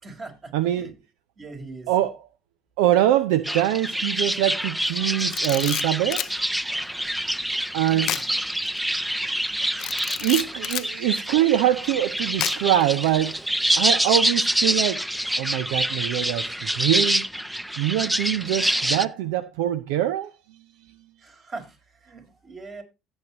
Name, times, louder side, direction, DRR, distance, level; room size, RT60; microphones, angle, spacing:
voice 1, 0.0-0.9 1.4-1.9 7.8-8.2 21.2-22.8, right 3 dB, 45° right, 4.6 m, -41 dB
voice 2, 0.5-0.9 1.9-2.3 2.8-6.3 7.7-8.1 10.2-13.4 13.8-15.0 15.4-17.2 17.8-20.3, right 12 dB, 75° right, 0.6 m, -23 dB
sound 1, 3.4-19.0, right 1 dB, 5° right, 0.6 m, -26 dB
Camera, 5.2-6.4 8.0-8.3 8.7-8.8 9.8-10.9 12.4-12.8, left 13 dB, 60° left, 0.4 m, -30 dB
16.0 x 8.1 x 2.9 m
hypercardioid pair, 60°, 0 cm